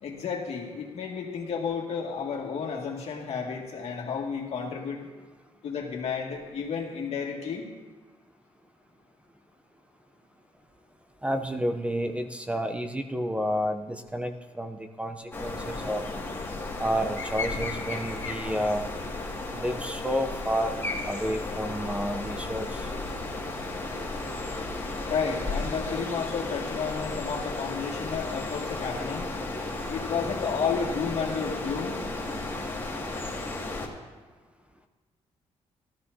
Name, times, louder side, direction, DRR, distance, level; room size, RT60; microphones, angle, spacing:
voice 1, 0.0-5.1 5.6-7.7 25.1-29.3 29.9-32.0, left 6 dB, 65° left, -1 dB, 2.1 m, -32 dB
voice 2, 11.2-16.0 16.8-18.8 19.5-20.7 21.1-22.9, equal, 10° right, 6 dB, 0.6 m, -30 dB
sound 1, 15.3-33.9, left 2 dB, 20° left, 2.1 m, -34 dB
16.5 x 13.0 x 2.7 m, 1.3 s
cardioid pair, 115°, 12 cm